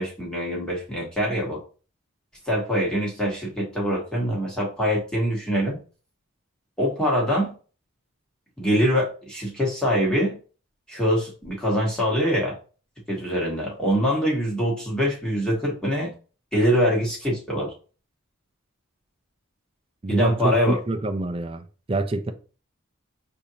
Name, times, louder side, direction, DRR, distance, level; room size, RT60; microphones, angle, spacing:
voice 1, 0.0-1.6 2.5-5.8 6.8-7.5 8.6-10.4 10.9-12.6 13.1-16.1 16.5-17.7 20.1-20.8, equal, 5° left, -4 dB, 1.4 m, -24 dB
voice 2, 20.0-22.3, right 2 dB, 25° right, 8 dB, 0.4 m, -27 dB
6.7 x 2.7 x 2.8 m, 0.37 s
head